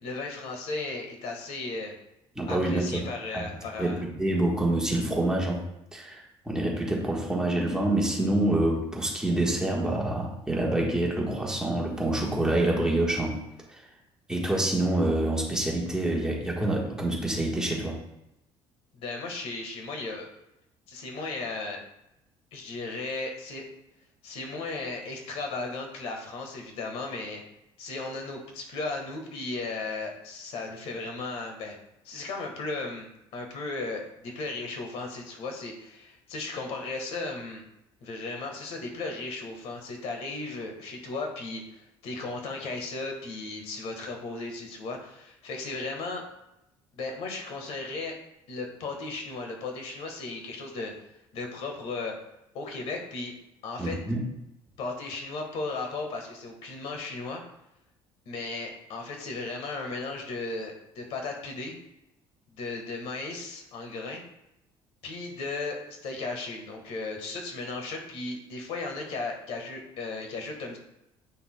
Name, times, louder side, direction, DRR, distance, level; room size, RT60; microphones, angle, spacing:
voice 1, 0.0-1.9 2.5-4.0 18.9-20.3 20.9-21.8 22.5-23.6 24.2-27.4 27.8-31.7 32.0-33.1 33.3-37.6 38.0-46.2 47.0-48.2 48.5-50.9 51.3-52.2 52.5-53.3 53.6-54.0 54.8-57.4 58.2-61.7 62.5-64.2 65.0-70.8, left 3 dB, 70° left, 2 dB, 1.5 m, -35 dB
voice 2, 2.4-3.0 3.3-3.4 3.8-5.7 5.9-13.4 13.7-13.8 14.3-18.0 53.8-54.2, right 1 dB, 5° right, -2 dB, 1.4 m, -27 dB
8.3 x 5.8 x 2.2 m, 0.85 s
cardioid pair, 140°, 11 cm